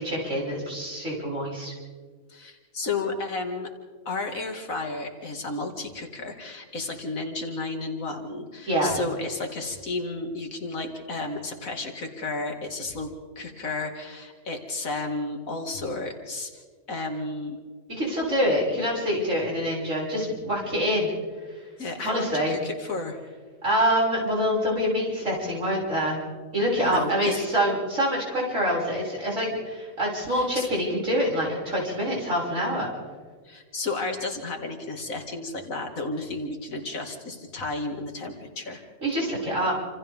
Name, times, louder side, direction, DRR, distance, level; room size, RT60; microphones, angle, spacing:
voice 1, 0.0-1.7 8.7-8.9 17.9-21.1 22.0-22.5 23.6-26.2 26.5-32.9 39.0-39.7, equal, 60° right, -4 dB, 6.9 m, -25 dB
voice 2, 2.3-3.7 4.1-16.6 16.9-17.6 21.8-23.2 26.8-27.4 30.3-30.7 33.4-38.8, left 3 dB, 70° left, 3 dB, 2.6 m, -32 dB
28.5 x 27.0 x 3.7 m, 1.5 s
omnidirectional pair, 1.5 m